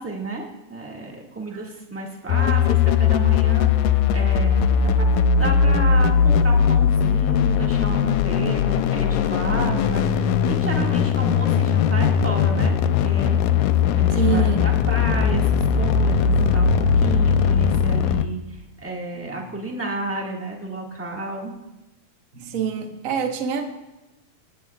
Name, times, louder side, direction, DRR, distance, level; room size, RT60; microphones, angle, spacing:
voice 1, 0.0-5.1 5.4-13.4 14.0-21.5, right 2 dB, 5° right, -2 dB, 1.0 m, -31 dB
sound 1, 2.3-18.3, left 7 dB, 90° left, 2.1 m, -19 dB
voice 2, 14.1-14.6 19.1-19.4 22.3-23.6, right 8 dB, 70° right, 2 dB, 0.7 m, -26 dB
27.0 x 9.3 x 2.4 m, 1.0 s
omnidirectional pair, 3.4 m